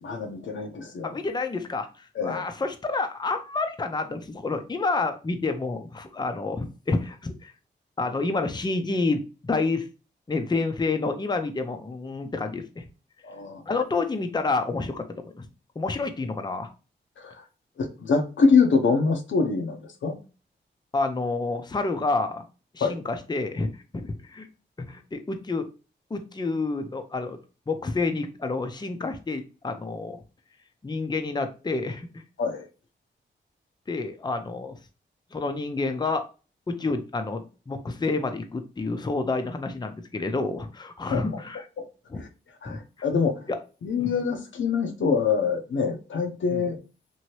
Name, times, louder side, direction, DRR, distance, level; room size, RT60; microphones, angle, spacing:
voice 1, 0.0-1.2 2.1-2.4 13.2-13.6 17.2-17.4 17.8-20.2 22.8-23.0 32.4-32.6 41.1-41.4 41.8-41.9 42.2-42.3 42.6-43.5 43.8-46.8, left 5 dB, 75° left, 0.6 m, -25 dB
voice 2, 1.0-7.5 8.0-9.9 10.3-12.9 13.7-15.5 15.8-16.7 20.9-22.4 22.7-24.5 24.8-25.7 26.1-27.4 27.7-30.2 30.8-32.2 33.9-34.8 35.3-36.2 36.7-41.6 42.1-42.2 42.7-42.8 43.5-43.6 44.0-44.1 46.5-46.6, left 3 dB, 20° left, 0.5 m, -29 dB
2.9 x 2.7 x 3.0 m
cardioid pair, 60°, 20 cm